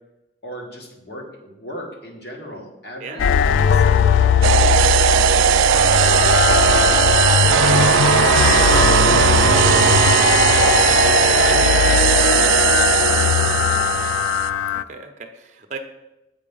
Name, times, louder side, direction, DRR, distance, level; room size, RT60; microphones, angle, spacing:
voice 1, 0.4-6.1 6.5-7.1 7.8-10.8 11.3-12.5 13.3-14.0, equal, 55° left, 0 dB, 1.6 m, -37 dB
voice 2, 3.0-3.4 14.7-15.8, right 4 dB, 40° right, 6 dB, 0.7 m, -36 dB
sound 1, 3.2-14.8, left 7 dB, 85° left, 0.3 m, -18 dB
sound 2, 4.4-14.5, right 9 dB, 85° right, 0.3 m, -17 dB
7.4 x 4.6 x 5.5 m, 0.96 s
head